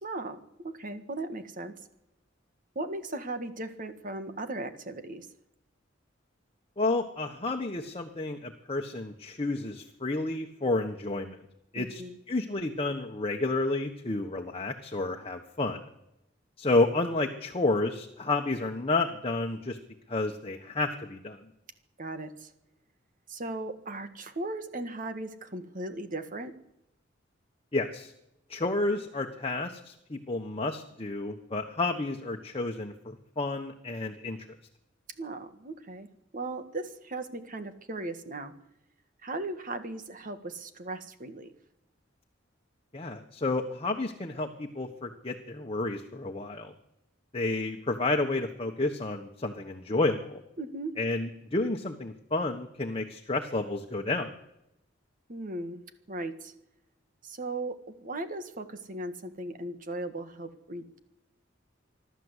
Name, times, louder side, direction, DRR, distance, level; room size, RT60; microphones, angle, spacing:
voice 1, 0.0-1.7 2.8-5.3 11.8-12.2 22.0-22.5 23.3-26.5 35.2-36.1 36.3-38.5 39.2-41.5 50.6-50.9 55.3-55.8 56.1-56.5 57.2-61.0, right 2 dB, 45° right, 9 dB, 1.7 m, -37 dB
voice 2, 6.8-11.4 11.7-12.0 12.3-15.8 16.6-19.8 20.1-21.4 27.7-28.1 28.5-34.4 42.9-46.7 47.3-50.4 51.0-54.3, left 2 dB, 30° left, 3 dB, 1.3 m, -30 dB
26.5 x 12.5 x 8.2 m, 0.85 s
head